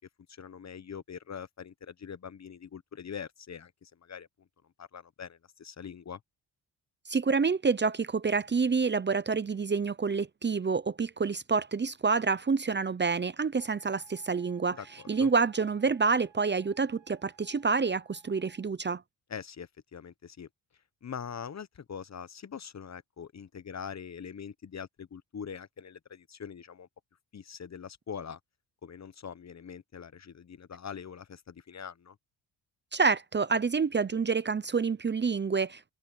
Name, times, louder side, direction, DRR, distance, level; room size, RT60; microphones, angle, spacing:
voice 1, 0.3-4.3 4.8-6.2 14.8-15.3 19.3-20.5 21.0-26.9 27.3-28.4 28.8-32.2, left 7 dB, 40° left, 1.1 m, -43 dB
voice 2, 7.1-14.8 15.1-19.0 32.9-35.9, right 5 dB, 25° right, 0.8 m, -28 dB
Wind instrument woodwind instrument, 13.5-18.7, right 8 dB, 85° right, 5.1 m, -61 dB
cardioid pair, 70°, 42 cm